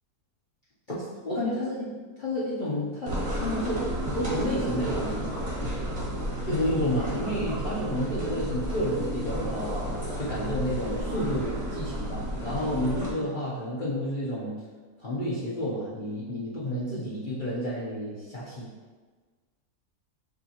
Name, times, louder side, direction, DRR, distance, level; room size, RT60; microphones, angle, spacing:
voice 1, 0.9-1.9 2.2-5.3 6.5-14.6 15.0-18.7, equal, 45° left, -8 dB, 0.7 m, -30 dB
sound 1, 3.1-13.1, equal, 30° right, 1.1 m, -32 dB
6.6 x 2.8 x 2.8 m, 1.4 s
omnidirectional pair, 1.5 m